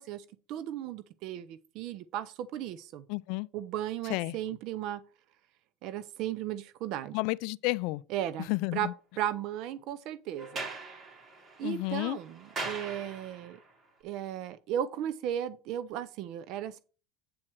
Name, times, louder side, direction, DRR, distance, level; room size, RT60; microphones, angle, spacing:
voice 1, 0.0-3.0 3.5-5.0 5.8-7.2 8.1-8.9 9.2-10.7 11.6-13.6 14.0-16.8, right 11 dB, 55° right, 0.6 m, -36 dB
voice 2, 3.1-3.5 4.1-4.4 7.1-8.0 8.5-8.9 11.6-12.2, left 23 dB, 65° left, 0.3 m, -31 dB
Sliding door, 10.4-13.6, right 3 dB, 30° right, 2.8 m, -41 dB
8.6 x 4.3 x 6.2 m
supercardioid pair, 120°, 0 cm